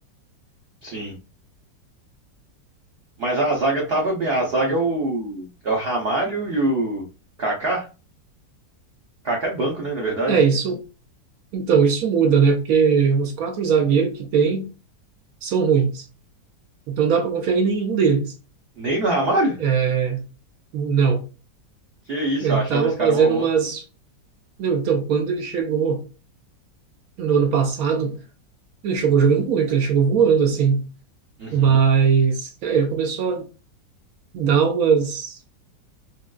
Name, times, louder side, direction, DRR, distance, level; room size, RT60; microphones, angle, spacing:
voice 1, 0.8-1.1 3.2-7.0 7.4-7.9 9.2-10.4 18.8-19.6 22.1-23.4 31.4-31.8, right 2 dB, 85° right, 0.5 m, -24 dB
voice 2, 10.3-10.8 11.5-14.7 15.4-16.1 16.9-18.3 19.6-20.2 20.7-21.2 22.4-23.8 24.6-26.0 27.2-28.2 28.8-30.8 31.5-33.5 34.3-35.4, right 6 dB, 70° right, 0.9 m, -20 dB
3.8 x 2.2 x 2.3 m
omnidirectional pair, 1.9 m